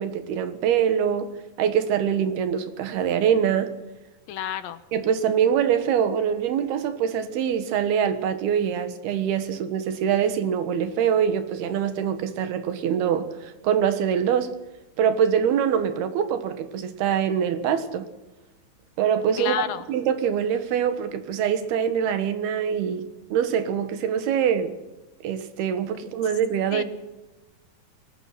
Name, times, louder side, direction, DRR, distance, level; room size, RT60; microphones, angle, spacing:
voice 1, 0.0-1.3 1.6-3.8 4.9-14.5 15.0-18.1 19.0-19.6 19.9-24.7 25.2-26.8, right 8 dB, 80° right, 3.4 m, -24 dB
voice 2, 4.3-4.8 19.4-19.9 26.7-26.8, left 10 dB, 70° left, 2.5 m, -30 dB
23.0 x 19.0 x 6.0 m
omnidirectional pair, 4.4 m